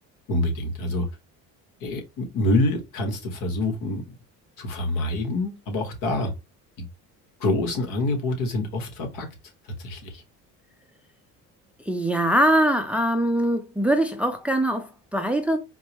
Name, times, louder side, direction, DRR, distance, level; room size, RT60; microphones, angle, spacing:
voice 1, 0.3-1.1 1.8-4.0 4.6-6.3 6.8-6.9 7.4-9.3 9.8-10.2, left 2 dB, 80° left, 1.4 m, -26 dB
voice 2, 11.9-15.6, right 1 dB, 5° right, 0.4 m, -22 dB
4.4 x 2.1 x 2.9 m
cardioid pair, 115°, 33 cm